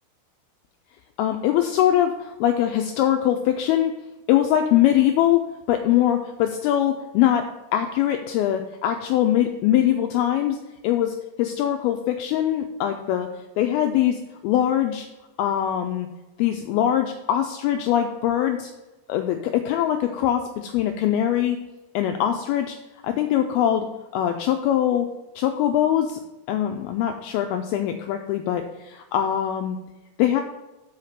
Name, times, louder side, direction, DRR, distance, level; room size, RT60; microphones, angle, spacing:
voice 1, 1.2-3.9 4.3-5.4 5.7-10.6 10.8-13.3 13.6-15.1 15.4-16.1 16.4-18.7 19.1-21.6 21.9-22.8 23.0-23.9 24.1-25.1 25.4-26.2 26.5-29.8 30.2-30.4, left 11 dB, 90° left, 5 dB, 2.1 m, -22 dB
5.7 x 5.7 x 6.5 m, 1.0 s
omnidirectional pair, 4.9 m